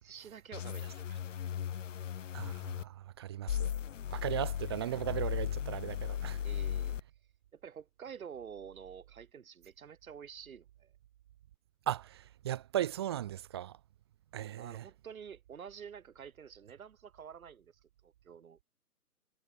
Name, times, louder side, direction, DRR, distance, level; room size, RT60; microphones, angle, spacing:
voice 1, 0.0-1.1 6.4-7.0 7.5-10.9 14.6-18.6, right 7 dB, 60° right, 3.7 m, -49 dB
sound 1, 0.5-2.8 3.5-7.0, left 9 dB, 50° left, 1.7 m, -36 dB
voice 2, 2.3-3.7 4.1-6.4 11.9-13.8 14.3-14.8, right 12 dB, 15° right, 0.7 m, -37 dB
hypercardioid pair, 145°, 47 cm